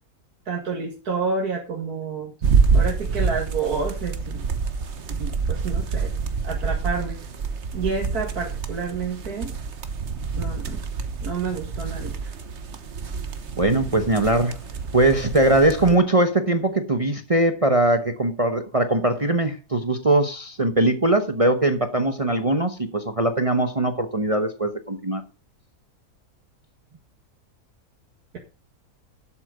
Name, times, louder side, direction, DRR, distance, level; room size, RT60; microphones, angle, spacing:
voice 1, 0.5-2.3 2.7-4.5 5.2-6.1 6.4-7.2 7.7-9.5 10.4-10.9 11.2-12.3, right 4 dB, 75° right, 2.3 m, -29 dB
sound 1, 2.4-15.9, right 5 dB, 50° right, 1.3 m, -27 dB
voice 2, 13.6-14.6 14.9-25.2, right 2 dB, 25° right, 0.9 m, -21 dB
12.0 x 7.9 x 5.0 m
omnidirectional pair, 1.7 m